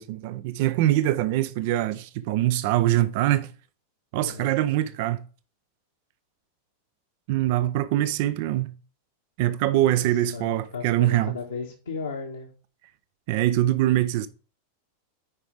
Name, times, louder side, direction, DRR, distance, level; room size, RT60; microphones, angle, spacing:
voice 1, 0.0-3.5 4.1-5.2 7.3-8.7 9.4-11.4 13.3-14.3, right 14 dB, 50° right, 0.5 m, -23 dB
voice 2, 4.2-4.5 7.5-7.6 9.7-12.5, left 5 dB, 70° left, 1.4 m, -36 dB
9.7 x 5.0 x 3.4 m
figure-of-eight pair, 90°, 0 cm